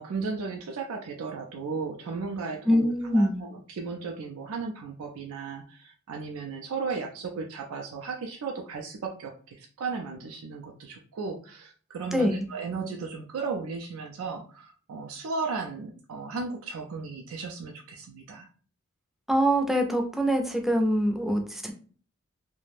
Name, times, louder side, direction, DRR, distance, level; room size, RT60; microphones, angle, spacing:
voice 1, 0.0-18.5, right 4 dB, 85° right, 2 dB, 0.4 m, -35 dB
voice 2, 2.7-3.4 12.1-12.4 19.3-21.7, equal, ahead, 2 dB, 0.4 m, -24 dB
2.4 x 2.1 x 3.2 m, 0.42 s
head